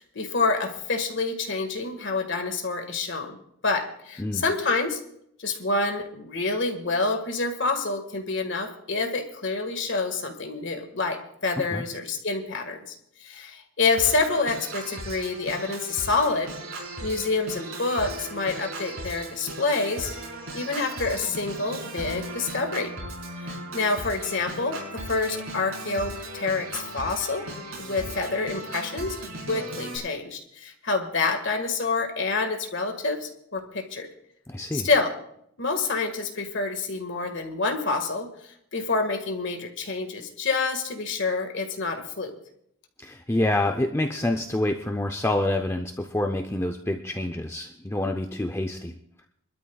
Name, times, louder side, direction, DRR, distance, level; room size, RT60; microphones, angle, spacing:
voice 1, 0.0-3.4 3.6-5.0 5.4-12.9 13.2-16.5 17.0-20.1 20.5-22.9 23.4-24.8 25.1-27.5 27.8-29.2 29.5-34.1 34.7-35.1 35.6-42.3, left 3 dB, 60° left, 5 dB, 1.8 m, -27 dB
Organ, 14.0-30.0, right 1 dB, 80° right, 4.6 m, -37 dB
voice 2, 34.5-34.9 43.0-48.9, left 1 dB, 10° left, 4 dB, 0.6 m, -27 dB
25.5 x 12.5 x 2.4 m, 0.72 s
head